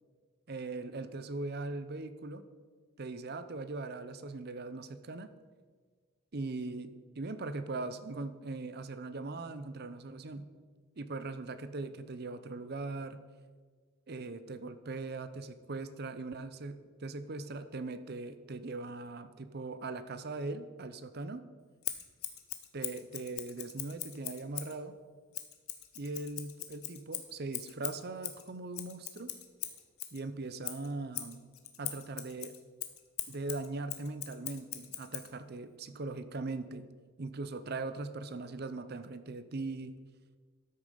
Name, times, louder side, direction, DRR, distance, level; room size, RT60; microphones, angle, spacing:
voice 1, 0.5-2.5 3.0-5.3 6.3-10.5 11.0-13.2 14.1-21.5 22.7-24.9 26.0-29.3 30.1-31.4 31.8-32.5 33.3-36.9 37.2-39.9, right 3 dB, 50° right, 12 dB, 0.6 m, -40 dB
Scissors, 21.8-24.8 25.3-30.2 30.6-35.3, left 13 dB, 85° left, 1.1 m, -41 dB
13.0 x 6.8 x 5.2 m, 1.5 s
head